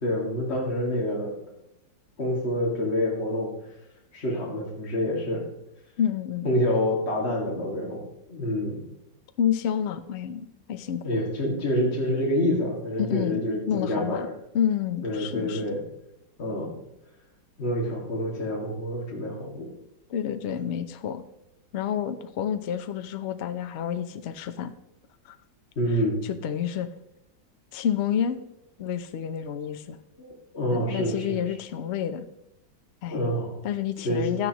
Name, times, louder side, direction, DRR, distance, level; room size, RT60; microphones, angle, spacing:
voice 1, 0.0-1.3 2.2-3.5 4.1-5.4 6.4-8.0 8.3-8.8 11.0-14.3 15.0-15.8 16.4-16.7 17.6-19.7 25.8-26.2 30.2-31.4 33.1-33.6 34.0-34.2, equal, 35° left, -3 dB, 2.3 m, -27 dB
voice 2, 6.0-6.5 9.4-11.3 13.0-14.3 14.5-15.7 20.1-21.2 21.7-24.7 25.2-25.4 26.2-26.9 27.7-28.4 28.8-30.0 30.7-32.3 33.0-33.3 33.6-34.5, left 9 dB, 65° left, 9 dB, 0.7 m, -29 dB
12.5 x 10.0 x 3.0 m, 0.84 s
omnidirectional pair, 2.0 m